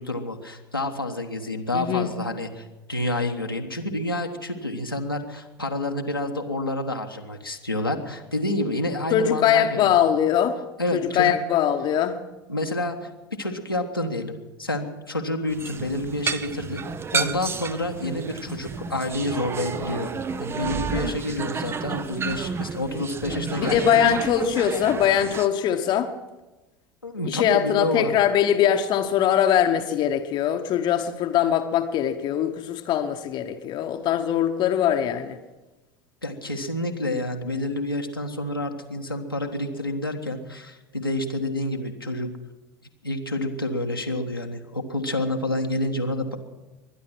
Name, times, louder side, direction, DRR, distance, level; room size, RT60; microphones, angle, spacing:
voice 1, 0.0-9.9 10.8-11.3 12.5-16.8 17.1-20.1 20.4-24.2 27.0-28.1 36.2-42.3 43.0-46.4, left 1 dB, 90° left, 2 dB, 1.3 m, -28 dB
voice 2, 1.7-2.1 9.1-10.6 10.9-12.2 23.5-26.1 27.2-35.4, left 9 dB, 40° left, 7 dB, 1.1 m, -22 dB
sound 1, 15.5-25.5, right 5 dB, 20° right, 0.7 m, -31 dB
23.0 x 10.5 x 6.0 m, 1.1 s
figure-of-eight pair, 75°, 12 cm